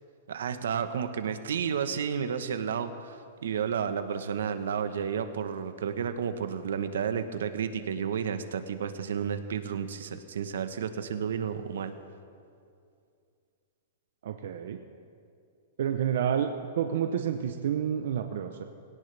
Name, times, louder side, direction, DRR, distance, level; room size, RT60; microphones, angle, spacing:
voice 1, 0.3-3.2 3.4-11.9, right 7 dB, 85° right, 9 dB, 1.1 m, -31 dB
voice 2, 14.2-14.8 15.8-16.5 16.8-18.6, right 9 dB, 65° right, 6 dB, 0.8 m, -29 dB
21.0 x 18.0 x 3.4 m, 2.4 s
hypercardioid pair, 165°, 0 cm